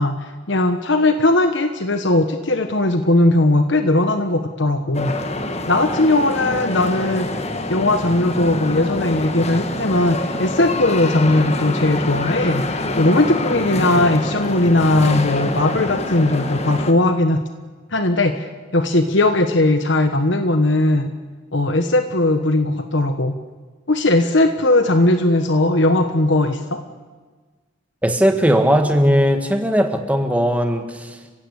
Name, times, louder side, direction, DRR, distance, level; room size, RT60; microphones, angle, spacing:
voice 1, 0.0-5.1 5.7-7.3 7.7-17.4 17.9-21.1 21.5-23.3 23.9-26.8, left 2 dB, 60° left, 8 dB, 1.2 m, -18 dB
sound 1, 4.9-16.9, left 2 dB, 30° left, 1.5 m, -26 dB
voice 2, 28.0-31.2, equal, 5° right, 5 dB, 1.9 m, -18 dB
30.0 x 16.5 x 8.4 m, 1.4 s
head